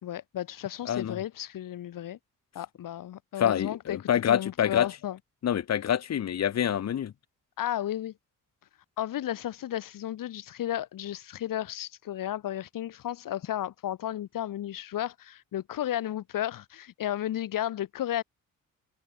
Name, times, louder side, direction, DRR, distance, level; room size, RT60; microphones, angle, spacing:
voice 1, 0.0-2.2 2.5-4.0 4.3-5.2 7.6-8.1 9.0-18.2, left 12 dB, 80° left, 3.9 m, -33 dB
voice 2, 0.8-1.2 3.4-4.9 5.4-7.1, left 9 dB, 55° left, 1.2 m, -26 dB
cardioid pair, 110°, 32 cm